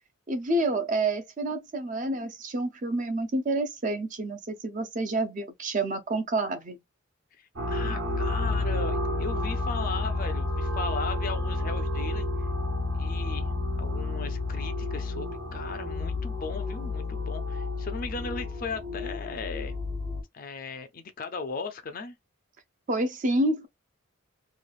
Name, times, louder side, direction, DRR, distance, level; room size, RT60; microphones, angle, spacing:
voice 1, 0.3-6.8 22.9-23.7, right 2 dB, 35° right, 0.5 m, -28 dB
voice 2, 7.4-12.3 13.0-19.8 20.3-22.2, left 4 dB, 40° left, 0.4 m, -37 dB
sound 1, 7.6-20.2, left 2 dB, 65° right, 1.0 m, -30 dB
3.1 x 2.3 x 2.3 m
head